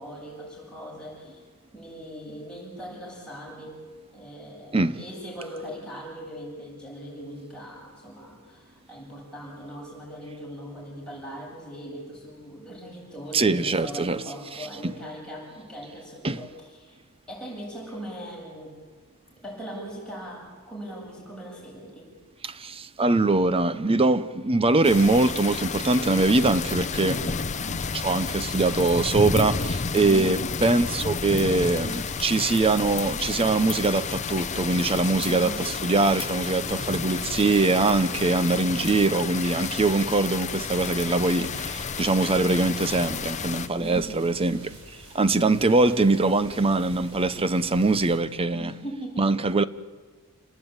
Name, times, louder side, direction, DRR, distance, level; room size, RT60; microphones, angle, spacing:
voice 1, 0.0-1.4 1.7-3.8 4.1-17.0 17.3-18.8 19.4-22.2 27.2-27.3 30.1-30.4 35.2-35.7 43.8-44.2 45.3-45.7 48.5-49.3, equal, 5° left, 7.8 m, -39 dB
voice 2, 13.3-14.2 14.8-14.9 16.2-16.4 22.4-27.3 27.6-44.8 45.1-48.7 49.2-49.6, right 3 dB, 25° right, 0.7 m, -23 dB
sound 1, 24.8-43.7, left 5 dB, 35° left, 0.7 m, -31 dB
sound 2, 30.8-48.2, right 1 dB, 65° right, 7.7 m, -47 dB
29.0 x 19.0 x 8.9 m
head